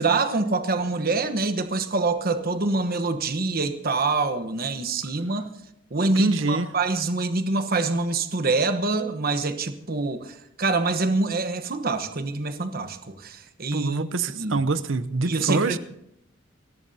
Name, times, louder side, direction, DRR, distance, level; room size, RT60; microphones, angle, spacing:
voice 1, 0.0-5.5 5.9-14.0 14.4-14.6 15.3-15.8, right 3 dB, 50° right, 1.2 m, -25 dB
voice 2, 6.2-6.7 13.7-15.8, right 3 dB, 80° right, 0.8 m, -25 dB
28.0 x 14.0 x 2.8 m
head